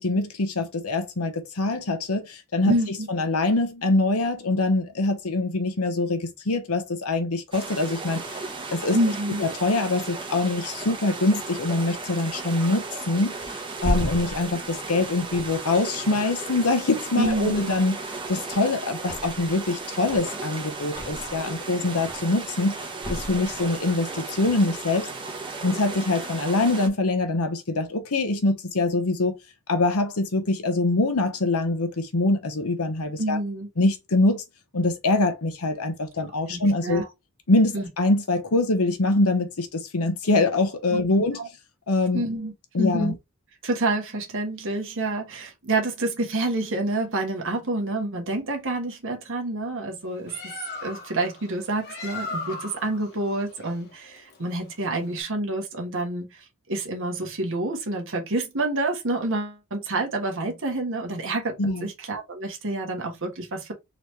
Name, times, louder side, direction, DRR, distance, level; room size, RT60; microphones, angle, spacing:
voice 1, 0.0-2.7 3.1-8.4 8.7-9.0 9.4-18.0 18.3-22.8 23.1-25.1 25.6-29.3 29.7-33.4 33.8-34.4 34.7-37.0 37.5-41.5 41.9-42.2 42.7-43.1 61.6-61.9, left 2 dB, 80° left, 0.9 m, -24 dB
voice 2, 2.6-3.1 8.9-9.4 17.2-17.7 33.2-33.7 36.5-37.1 37.7-37.9 40.9-41.0 41.4-41.5 42.1-42.5 42.8-43.2 43.6-50.5 50.8-63.7, right 2 dB, 60° right, 1.3 m, -28 dB
sound 1, 7.5-26.9, right 3 dB, 20° right, 0.9 m, -35 dB
Thump thud, 13.4-16.7 17.1-17.9 18.2-19.7 20.0-21.5 21.9-22.4 23.0-24.0 24.3-24.5, equal, 25° left, 1.1 m, -34 dB
Bird, 50.0-55.2, left 3 dB, 50° left, 1.2 m, -38 dB
4.0 x 3.0 x 3.2 m
head